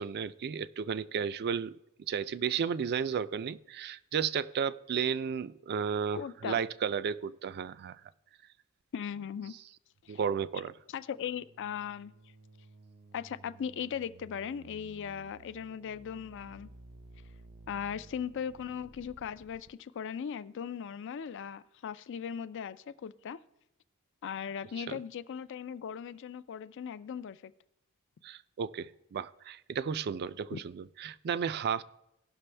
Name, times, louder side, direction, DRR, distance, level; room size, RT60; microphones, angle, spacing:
voice 1, 0.0-1.8 2.1-8.0 10.1-10.7 24.9-25.0 28.2-31.8, right 7 dB, 50° right, 0.4 m, -33 dB
voice 2, 6.1-6.6 8.9-9.5 10.0-10.2 10.9-12.1 13.1-16.7 17.7-23.4 24.2-27.5 30.5-30.6, left 7 dB, 55° left, 0.4 m, -38 dB
sound 1, 10.9-19.7, right 2 dB, 75° right, 0.7 m, -55 dB
17.5 x 6.1 x 3.3 m
head